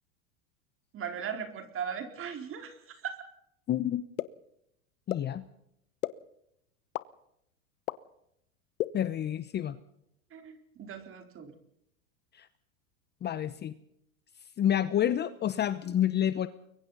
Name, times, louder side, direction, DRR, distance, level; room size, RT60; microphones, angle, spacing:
voice 1, 0.9-3.2 10.3-11.5, right 7 dB, 30° right, 6 dB, 4.2 m, -38 dB
voice 2, 3.7-4.0 5.1-5.4 8.9-9.8 12.3-12.5 13.2-13.7 14.6-16.5, left 10 dB, 25° left, 13 dB, 0.9 m, -28 dB
sound 1, 4.2-4.3 5.1-5.2 6.0-6.1 6.9-7.0 7.9-8.0 8.8-8.9, left 16 dB, 75° left, 1.2 m, -30 dB
30.0 x 23.0 x 4.1 m, 0.77 s
hypercardioid pair, 120°, 42 cm